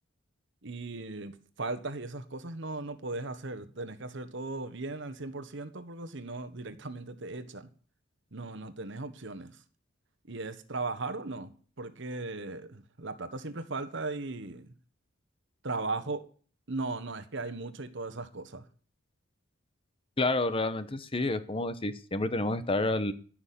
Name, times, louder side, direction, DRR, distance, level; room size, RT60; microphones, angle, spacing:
voice 1, 0.6-7.7 8.3-9.6 10.3-14.7 15.6-16.2 16.7-18.6, right 3 dB, 65° right, 1.3 m, -37 dB
voice 2, 20.2-23.1, left 2 dB, 25° left, 0.9 m, -29 dB
14.0 x 6.2 x 8.5 m
head